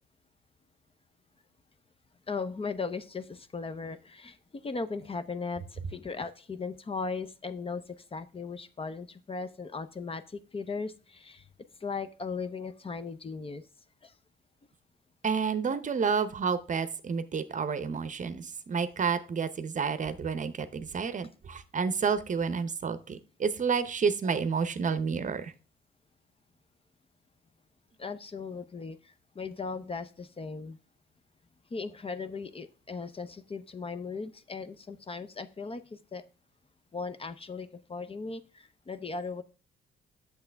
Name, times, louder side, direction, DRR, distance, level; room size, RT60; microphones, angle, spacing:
voice 1, 2.3-7.8 8.1-11.4 11.8-13.6 14.0-14.1 28.0-30.8 31.7-36.2 36.9-39.4, left 4 dB, 30° left, 11 dB, 0.6 m, -37 dB
voice 2, 15.2-25.5, right 6 dB, 40° right, 13 dB, 0.7 m, -30 dB
8.4 x 6.9 x 3.4 m, 0.35 s
cardioid pair, 90°, 20 cm